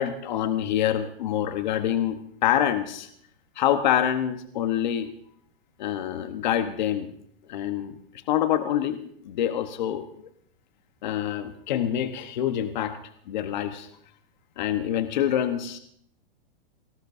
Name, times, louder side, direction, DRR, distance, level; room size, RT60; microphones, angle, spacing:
voice 1, 0.0-3.1 3.6-5.1 5.8-7.1 7.5-8.0 8.3-10.3 11.0-13.0 13.3-13.9 14.6-15.8, left 10 dB, 50° left, 8 dB, 1.1 m, -26 dB
27.5 x 19.0 x 2.6 m, 0.65 s
supercardioid pair, 170°, 29 cm